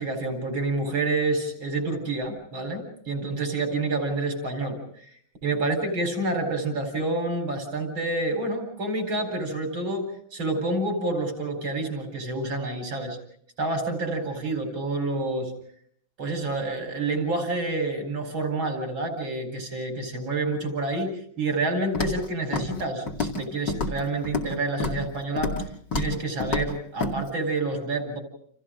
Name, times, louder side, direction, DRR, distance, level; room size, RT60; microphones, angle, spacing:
voice 1, 0.0-4.8 5.4-10.0 10.3-13.2 13.6-15.5 16.2-25.5 25.9-28.2, right 2 dB, 85° right, 4 dB, 5.1 m, -28 dB
Walk footsteps, 21.9-22.2 22.5-22.8 23.1-23.4 23.7-24.5 24.8-25.0 25.4-25.6 25.9-26.1 26.4-26.7 27.0-27.1, left 3 dB, 60° left, 2.9 m, -28 dB
29.5 x 28.0 x 3.8 m, 0.65 s
omnidirectional pair, 2.1 m